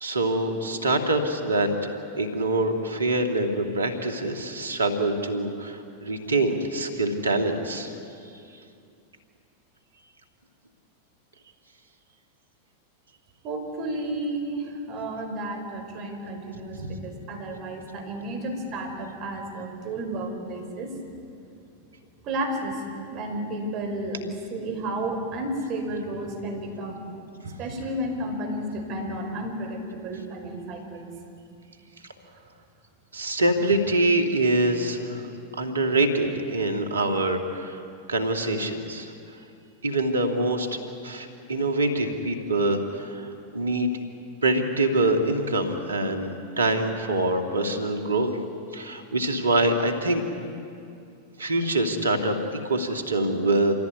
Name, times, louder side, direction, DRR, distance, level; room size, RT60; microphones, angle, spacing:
voice 1, 0.0-1.7 2.2-7.9 16.8-16.9 33.1-35.3 35.6-37.8 38.1-39.1 39.8-43.9 44.4-46.3 46.6-48.3 48.7-50.2 51.4-53.7, right 2 dB, 90° right, 4 dB, 2.4 m, -25 dB
voice 2, 13.4-21.0 22.2-22.8 23.1-27.0 27.6-31.1, right 1 dB, 45° right, 3 dB, 5.4 m, -32 dB
26.0 x 16.5 x 9.6 m, 2.5 s
hypercardioid pair, 95°, 0 cm